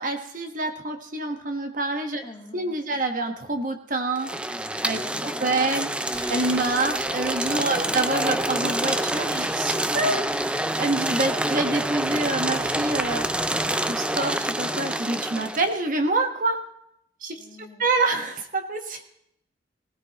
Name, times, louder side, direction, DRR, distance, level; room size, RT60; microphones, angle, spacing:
voice 1, 0.0-2.2 2.5-13.3 13.8-16.6 17.2-17.5 17.8-19.0, right 2 dB, 50° right, 5 dB, 1.3 m, -27 dB
voice 2, 2.2-3.0 5.0-5.7 7.7-8.1 17.4-18.0, left 2 dB, 25° left, 2 dB, 1.7 m, -46 dB
sound 1, 4.2-15.7, right 1 dB, 5° right, 0.4 m, -27 dB
sound 2, 6.0-15.2, right 1 dB, 30° right, 1.4 m, -43 dB
20.0 x 16.5 x 3.0 m, 0.76 s
head